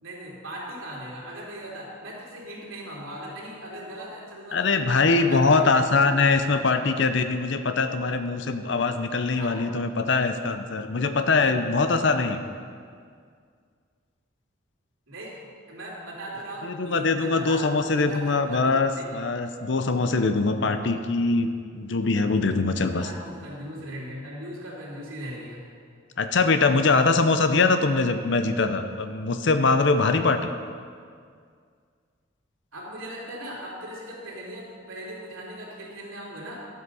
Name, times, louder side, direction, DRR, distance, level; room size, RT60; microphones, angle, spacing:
voice 1, 0.0-5.6 9.3-9.5 15.1-19.2 22.9-25.6 32.7-36.6, right 1 dB, 85° right, -5 dB, 3.2 m, -39 dB
voice 2, 4.5-12.4 16.6-21.5 21.7-23.1 26.2-30.5, left 3 dB, 60° left, 8 dB, 0.6 m, -22 dB
12.0 x 8.1 x 5.5 m, 2.1 s
head